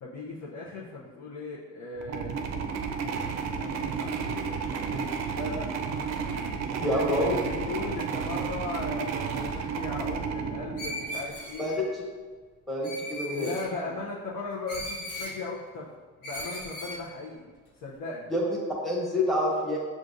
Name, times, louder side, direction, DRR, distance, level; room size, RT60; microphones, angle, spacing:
voice 1, 0.0-2.4 3.5-5.7 6.7-11.8 13.3-15.9 16.2-17.5 17.8-18.3, left 3 dB, 65° left, -6 dB, 0.8 m, -38 dB
sound 1, 2.0-11.4, right 5 dB, 60° right, 0.5 m, -32 dB
voice 2, 6.8-7.4 11.6-12.0 12.7-13.5 18.3-18.4 18.8-19.8, left 1 dB, ahead, -4 dB, 1.1 m, -27 dB
Screech, 10.8-11.8 12.8-13.7 14.7-15.4 16.2-17.0, left 1 dB, 90° left, 1.2 m, -37 dB
6.4 x 2.5 x 2.5 m, 1.4 s
cardioid pair, 90°, 30 cm